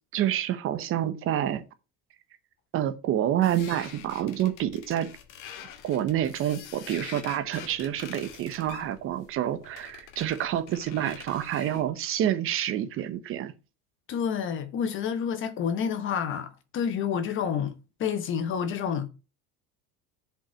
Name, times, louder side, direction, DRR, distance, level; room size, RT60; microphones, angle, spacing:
voice 1, 0.1-1.6 2.7-5.1 5.8-13.5, right 11 dB, 35° right, 0.9 m, -28 dB
sound 1, 3.4-11.9, left 9 dB, 60° left, 1.9 m, -46 dB
voice 2, 14.1-17.7 18.0-19.1, left 7 dB, 35° left, 1.1 m, -29 dB
7.4 x 5.4 x 6.2 m
cardioid pair, 175°, 36 cm